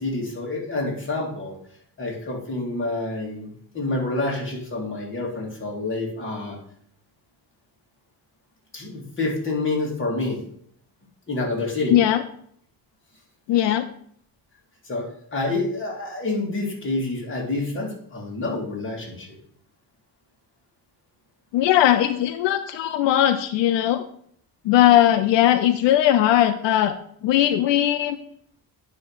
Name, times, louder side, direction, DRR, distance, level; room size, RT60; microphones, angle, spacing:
voice 1, 0.0-1.6 2.0-3.5 3.7-6.6 8.7-10.4 11.3-12.0 14.8-19.4, left 2 dB, 30° left, -2 dB, 2.5 m, -28 dB
voice 2, 11.9-12.2 13.5-13.9 21.5-24.0 24.6-26.9 27.2-28.2, left 12 dB, 80° left, 10 dB, 0.6 m, -19 dB
9.7 x 3.3 x 5.6 m, 0.64 s
cardioid pair, 125°, 43 cm